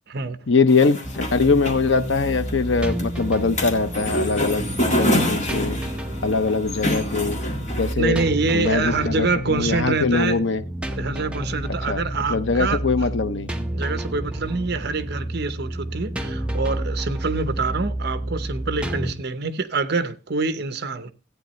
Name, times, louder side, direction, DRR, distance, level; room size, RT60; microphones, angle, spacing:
voice 1, 0.5-4.6 5.0-5.8 6.2-7.4 7.8-8.2 8.5-10.6 11.9-13.5, left 4 dB, 60° left, 0.7 m, -22 dB
sound 1, 0.7-7.9, equal, 35° left, 1.9 m, -27 dB
sound 2, 1.0-19.1, right 1 dB, 5° right, 0.7 m, -30 dB
voice 2, 8.0-10.4 10.9-12.8 13.7-21.1, right 4 dB, 50° right, 0.8 m, -26 dB
14.5 x 9.2 x 3.1 m
head